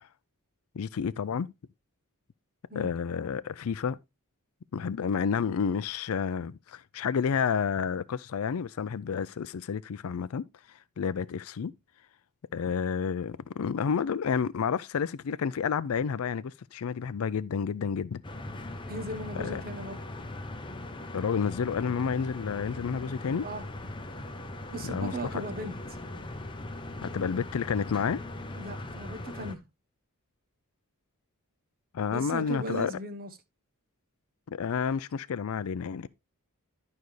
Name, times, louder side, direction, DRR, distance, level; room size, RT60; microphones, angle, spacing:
voice 1, 0.7-1.5 2.8-4.0 4.7-10.4 11.0-11.7 12.5-18.2 19.4-19.6 21.1-23.5 24.8-25.4 27.0-28.2 31.9-32.9 34.5-36.1, left 6 dB, 70° left, 0.4 m, -30 dB
sound 1, 18.2-29.6, left 1 dB, 20° left, 0.8 m, -40 dB
voice 2, 18.9-20.0 23.4-23.6 24.7-25.7 28.6-29.6 32.1-33.3, right 1 dB, 40° right, 1.0 m, -37 dB
11.5 x 5.3 x 3.2 m
head